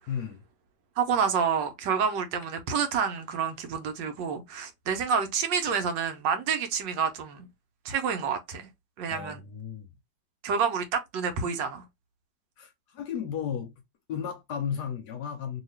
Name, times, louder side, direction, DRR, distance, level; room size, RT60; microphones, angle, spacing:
voice 1, 0.1-0.4 9.1-9.9 12.6-13.7 14.1-15.6, left 8 dB, 70° left, 1.1 m, -34 dB
voice 2, 1.0-7.5 7.8-8.7 9.0-9.4 10.4-11.8, right 6 dB, 75° right, 1.3 m, -28 dB
2.8 x 2.8 x 3.2 m
omnidirectional pair, 2.1 m